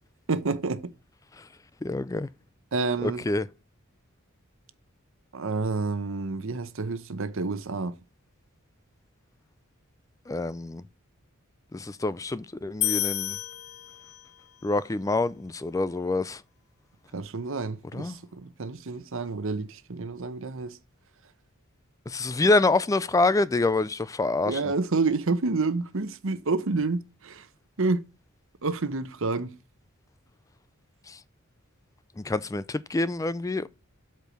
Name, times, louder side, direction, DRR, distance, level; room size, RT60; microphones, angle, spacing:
voice 1, 0.3-0.9 2.7-3.2 5.3-8.0 17.1-20.8 24.4-27.5 27.8-28.0 28.6-29.5, right 3 dB, 65° right, 0.9 m, -29 dB
voice 2, 1.8-2.3 3.0-3.5 10.3-10.8 11.7-13.4 14.6-16.4 17.9-18.2 22.1-24.6 31.1-31.2 32.2-33.7, left 2 dB, 15° left, 0.3 m, -26 dB
sound 1, 12.8-14.4, left 15 dB, 80° left, 0.5 m, -30 dB
8.2 x 4.5 x 6.0 m
head